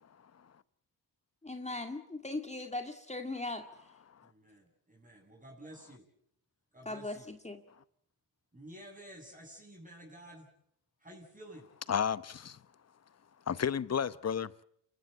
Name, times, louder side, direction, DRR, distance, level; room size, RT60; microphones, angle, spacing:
voice 1, 1.4-3.9 6.9-7.6, left 2 dB, 15° left, 2.1 m, -39 dB
voice 2, 4.2-6.0 6.7-7.3 8.5-10.5 11.0-11.7, right 1 dB, 20° right, 7.6 m, -51 dB
voice 3, 11.9-12.6 13.5-14.5, left 7 dB, 35° left, 0.9 m, -32 dB
28.5 x 15.5 x 8.2 m
supercardioid pair, 60°, 45 cm